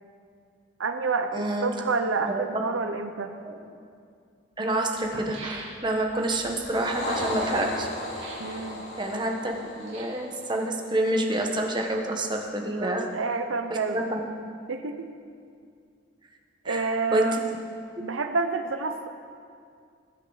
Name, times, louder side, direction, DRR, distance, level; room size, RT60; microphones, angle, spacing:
voice 1, 0.8-3.3 8.4-8.8 12.8-14.0 14.7-15.1 16.7-17.6 18.0-19.1, right 4 dB, 85° right, 7 dB, 0.7 m, -29 dB
voice 2, 1.3-1.7 2.2-2.4 3.4-3.6 4.6-7.9 9.0-13.1 13.7-14.5 16.6-17.4 18.0-18.1, right 1 dB, 25° right, 2 dB, 1.2 m, -28 dB
sound 1, 3.6-3.7 4.5-4.6 4.9-6.1 8.1-8.6 9.7-10.3 11.1-11.9 12.2-12.3, right 2 dB, 65° right, 3.0 m, -43 dB
sound 2, 6.4-11.0, left 1 dB, 55° left, 4.1 m, -35 dB
21.0 x 9.1 x 4.0 m, 2.3 s
head